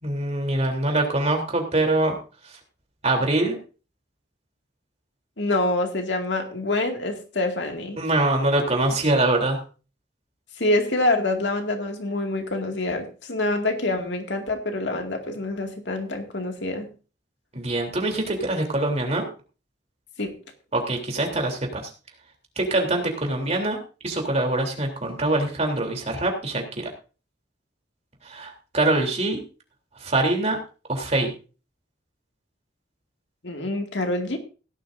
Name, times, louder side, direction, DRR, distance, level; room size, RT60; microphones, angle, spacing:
voice 1, 0.0-2.2 2.4-2.6 3.0-3.6 8.0-9.6 17.5-19.3 20.7-21.9 22.5-26.6 28.2-29.4 30.0-30.6 30.9-31.3, right 2 dB, 40° right, 2 dB, 3.4 m, -24 dB
voice 2, 5.4-8.0 10.6-16.9 20.2-20.4 33.4-34.4, left 2 dB, 80° left, 4 dB, 2.2 m, -26 dB
17.0 x 11.5 x 2.7 m, 0.35 s
head